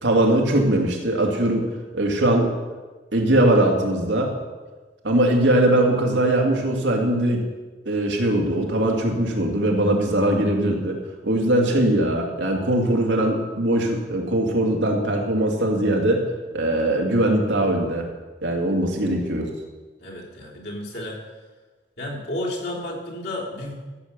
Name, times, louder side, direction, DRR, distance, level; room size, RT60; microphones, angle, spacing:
voice 1, 0.0-1.7 1.9-2.5 3.1-4.3 5.0-7.4 7.9-11.0 11.2-16.2 16.5-18.1 18.4-19.5, right 1 dB, 90° right, 0 dB, 2.5 m, -21 dB
voice 2, 20.0-21.2 22.0-23.7, left 1 dB, 65° left, -3 dB, 3.5 m, -32 dB
14.5 x 7.7 x 6.8 m, 1.3 s
head